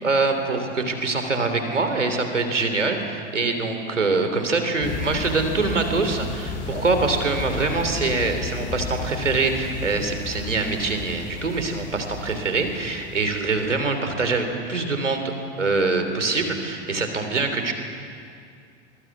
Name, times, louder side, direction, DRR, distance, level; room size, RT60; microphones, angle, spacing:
voice 1, 0.0-15.2 15.6-17.7, right 3 dB, 85° right, 6 dB, 3.4 m, -24 dB
sound 1, 4.8-13.9, left 3 dB, 40° left, 6.2 m, -33 dB
25.0 x 22.0 x 8.4 m, 2.3 s
figure-of-eight pair, 85°, 36 cm